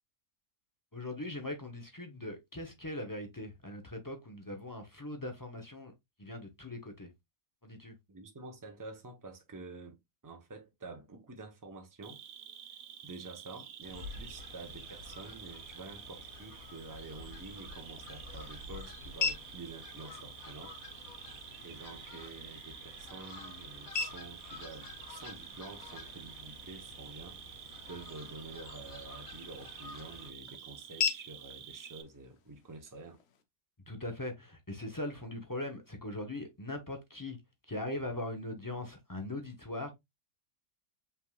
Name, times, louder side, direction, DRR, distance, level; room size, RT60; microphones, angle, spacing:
voice 1, 0.9-5.9 6.2-7.1 7.6-7.9 33.9-37.4 37.7-39.9, left 1 dB, 20° left, 0.6 m, -40 dB
voice 2, 8.1-12.2 13.0-20.8 21.0-21.2 21.6-27.6 27.9-33.2, right 3 dB, 20° right, 0.6 m, -48 dB
Cricket, 12.0-32.0, right 9 dB, 90° right, 1.1 m, -50 dB
Fowl, 13.8-30.3, left 4 dB, 85° left, 1.5 m, -50 dB
sound 1, 17.4-33.4, left 5 dB, 55° left, 0.9 m, -43 dB
5.6 x 3.6 x 2.2 m
omnidirectional pair, 1.4 m